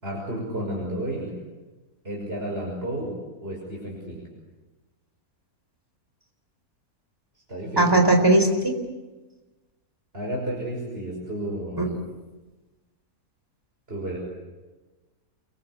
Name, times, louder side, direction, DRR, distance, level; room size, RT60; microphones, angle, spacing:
voice 1, 0.0-1.3 2.0-3.2 3.4-4.3 7.5-8.0 10.1-11.9 13.9-14.2, right 1 dB, 40° right, -2 dB, 6.4 m, -31 dB
voice 2, 7.8-8.7 11.8-11.9, right 1 dB, 15° right, 4 dB, 4.2 m, -18 dB
27.5 x 24.0 x 8.5 m, 1.2 s
omnidirectional pair, 1.6 m